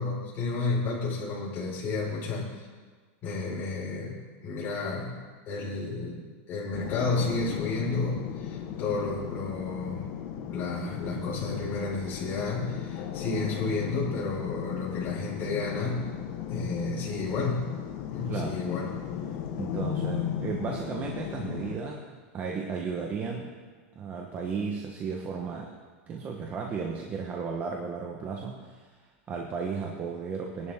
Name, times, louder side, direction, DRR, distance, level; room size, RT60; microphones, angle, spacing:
voice 1, 0.0-2.5 3.2-4.2 4.4-5.1 5.5-10.0 10.5-16.1 16.5-17.7 18.1-18.9, left 3 dB, 30° left, -6 dB, 5.3 m, -31 dB
sound 1, 6.7-21.7, left 9 dB, 50° left, 1.6 m, -36 dB
voice 2, 18.3-18.6 19.6-23.5 23.9-25.7 26.1-28.9 29.3-30.7, right 5 dB, 25° right, 0 dB, 1.2 m, -34 dB
21.0 x 11.0 x 3.7 m, 1.5 s
supercardioid pair, 160°, 7 cm